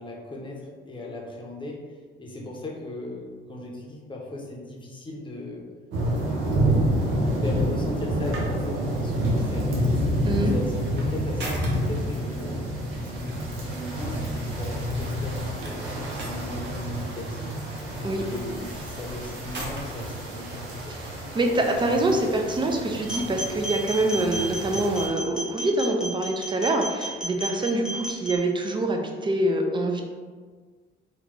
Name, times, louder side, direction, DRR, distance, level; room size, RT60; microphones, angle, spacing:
voice 1, 0.0-1.8 2.2-5.7 6.1-7.0 7.4-12.6 12.9-13.3 13.6-17.6 18.1-21.0, left 1 dB, 25° left, -1 dB, 0.8 m, -38 dB
sound 1, 5.9-25.1, equal, 90° right, 0.8 m, -28 dB
sound 2, 8.0-23.5, right 2 dB, 60° right, 0.9 m, -45 dB
voice 2, 21.3-30.0, right 1 dB, 25° right, 3 dB, 0.5 m, -25 dB
sound 3, 23.1-28.4, right 1 dB, 5° right, 1.2 m, -33 dB
3.1 x 2.4 x 3.6 m, 1.5 s
cardioid pair, 90°, 20 cm